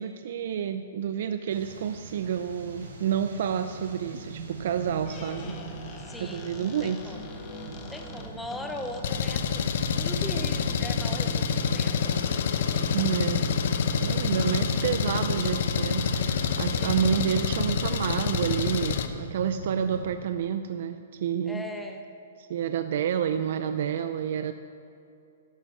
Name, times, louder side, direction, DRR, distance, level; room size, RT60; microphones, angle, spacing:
voice 1, 0.0-5.6 6.2-7.2 12.9-13.4 14.0-21.6 22.4-24.5, right 8 dB, 45° right, 9 dB, 0.5 m, -29 dB
sound 1, 1.5-20.1, right 3 dB, 85° right, 3.8 m, -43 dB
Squeak, 4.9-9.4, left 3 dB, 20° left, 1.0 m, -44 dB
voice 2, 6.0-7.3 7.9-13.1 16.8-17.2 21.4-22.0, left 1 dB, 5° left, 3 dB, 0.7 m, -40 dB
Engine, 9.0-19.1, left 6 dB, 45° left, 0.9 m, -27 dB
13.0 x 11.5 x 6.1 m, 2.6 s
hypercardioid pair, 175°, 0 cm